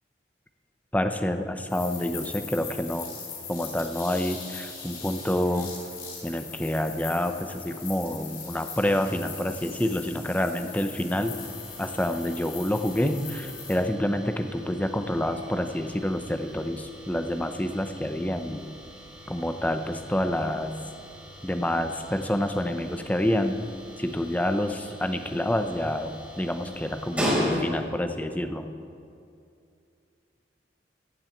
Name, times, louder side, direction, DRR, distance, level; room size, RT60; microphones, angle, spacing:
voice 1, 0.9-3.1 3.5-5.7 6.2-11.4 11.8-18.6 19.3-20.8 21.4-23.7 24.0-28.7, left 1 dB, 10° left, 7 dB, 0.7 m, -28 dB
sound 1, 1.7-13.8, left 5 dB, 50° left, 3.6 m, -41 dB
sound 2, 11.2-28.0, equal, 10° right, 4.0 m, -38 dB
15.0 x 7.6 x 9.2 m, 2.5 s
head